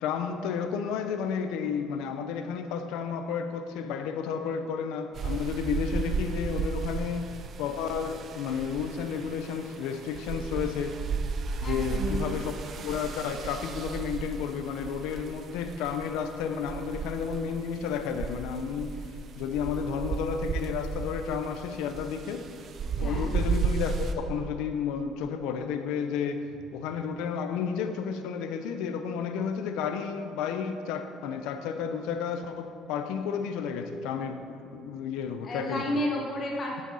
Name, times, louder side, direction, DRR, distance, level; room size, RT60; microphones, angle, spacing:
voice 1, 0.0-7.3 7.6-11.0 11.6-12.5 12.8-19.0 19.4-22.5 23.0-26.5 26.7-35.9, left 6 dB, 85° left, 8 dB, 0.8 m, -32 dB
sound 1, 5.1-24.1, right 5 dB, 45° right, 0.8 m, -34 dB
voice 2, 11.6-12.3 23.0-23.4 35.4-36.8, left 1 dB, 40° left, -2 dB, 2.2 m, -32 dB
12.5 x 6.8 x 5.5 m, 2.4 s
cardioid pair, 115°, 0 cm